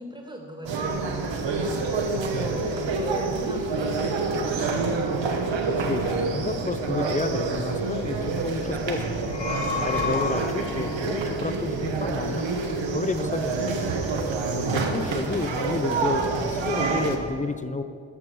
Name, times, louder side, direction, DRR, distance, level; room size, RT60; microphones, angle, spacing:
voice 1, 0.0-5.2 14.4-15.1, right 1 dB, 10° right, 1 dB, 1.3 m, -41 dB
sound 1, 0.6-17.2, right 3 dB, 70° right, 1.0 m, -27 dB
voice 2, 5.9-9.1 9.7-12.5 12.9-13.9 14.7-17.8, left 3 dB, 20° left, 10 dB, 0.4 m, -30 dB
sound 2, 9.1-11.0, left 4 dB, 60° left, 1.0 m, -30 dB
7.8 x 5.8 x 6.1 m, 2.3 s
cardioid pair, 50°, 46 cm